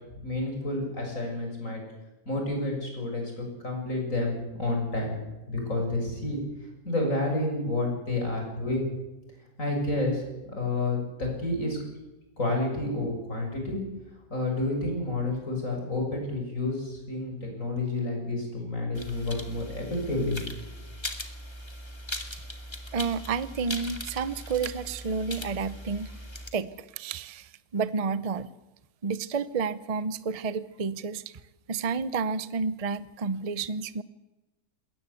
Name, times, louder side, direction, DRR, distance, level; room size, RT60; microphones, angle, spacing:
voice 1, 0.2-1.8 2.3-5.2 5.5-6.4 6.8-8.9 9.6-10.2 10.5-11.8 12.4-13.8 14.3-20.4, left 2 dB, 50° left, 1 dB, 7.3 m, -29 dB
sound 1, 18.9-26.5, left 1 dB, 15° left, 1.9 m, -39 dB
voice 2, 22.9-26.1 26.5-28.5 29.0-31.4 31.7-34.0, right 5 dB, 30° right, 16 dB, 0.7 m, -30 dB
21.0 x 17.5 x 8.4 m, 1.0 s
omnidirectional pair, 1.7 m